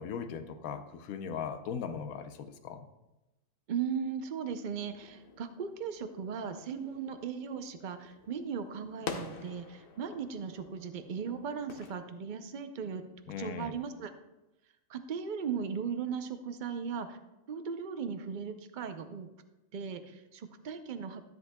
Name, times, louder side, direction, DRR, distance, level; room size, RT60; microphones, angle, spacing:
voice 1, 0.0-2.9 13.3-13.8, left 6 dB, 80° left, 9 dB, 1.1 m, -39 dB
voice 2, 3.7-13.1 13.4-14.1 14.9-17.2 17.5-19.3 19.7-21.2, right 6 dB, 55° right, 9 dB, 0.5 m, -37 dB
sound 1, 4.8-11.9, left 5 dB, 50° left, 0.8 m, -47 dB
13.0 x 7.9 x 2.2 m, 0.97 s
omnidirectional pair, 1.5 m